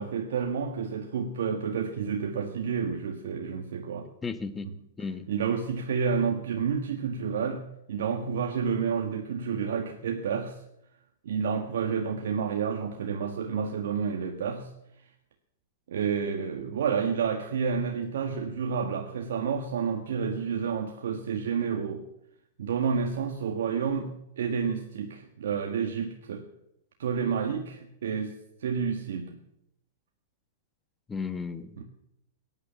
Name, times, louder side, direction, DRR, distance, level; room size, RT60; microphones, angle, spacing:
voice 1, 0.0-4.1 4.6-4.7 5.3-10.6 11.2-14.7 15.9-22.1 22.6-26.5 27.0-28.3 28.6-29.4 31.8-31.9, right 6 dB, 75° right, 3 dB, 1.6 m, -30 dB
voice 2, 4.2-4.7 5.0-5.3 31.1-31.8, left 5 dB, 15° left, 12 dB, 1.2 m, -34 dB
17.0 x 9.7 x 7.4 m, 0.81 s
hypercardioid pair, 125°, 0 cm